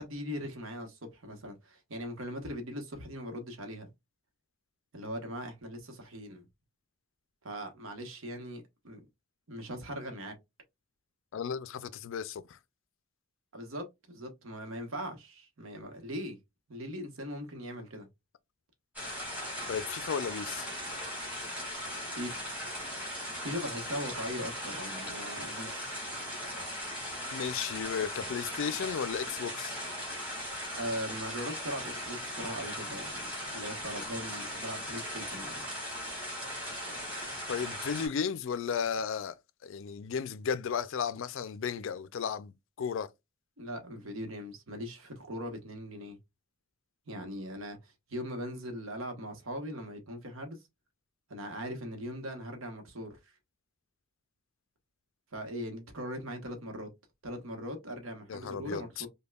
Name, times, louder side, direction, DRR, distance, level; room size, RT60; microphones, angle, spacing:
voice 1, 0.0-3.9 4.9-6.4 7.4-9.0 9.5-10.3 13.5-16.4 16.7-18.1 22.2-22.4 23.4-26.0 30.7-35.6 43.6-46.2 47.1-50.6 51.3-53.3 55.3-56.9 57.2-59.1, equal, 70° right, 1.0 m, -40 dB
voice 2, 11.3-12.6 19.7-20.7 27.3-29.8 37.5-39.4 39.6-43.1 58.3-59.1, left 7 dB, 65° left, 0.4 m, -34 dB
sound 1, 19.0-38.1, equal, 10° right, 2.0 m, -38 dB
5.2 x 2.2 x 2.3 m
head